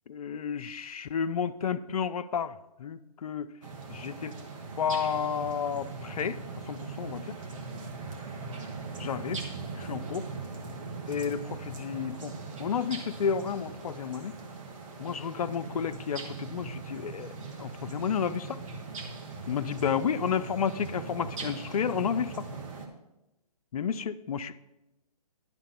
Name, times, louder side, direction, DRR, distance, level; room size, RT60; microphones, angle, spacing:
voice 1, 0.1-3.5 3.9-4.3 4.8-6.4 6.7-7.4 9.0-9.4 9.8-10.3 11.1-14.4 15.0-18.6 19.5-22.4 23.7-24.6, left 7 dB, 70° left, 10 dB, 0.5 m, -31 dB
sound 1, 3.6-22.9, right 4 dB, 55° right, 1.6 m, -40 dB
11.0 x 3.7 x 7.4 m, 0.96 s
hypercardioid pair, 140°, 20 cm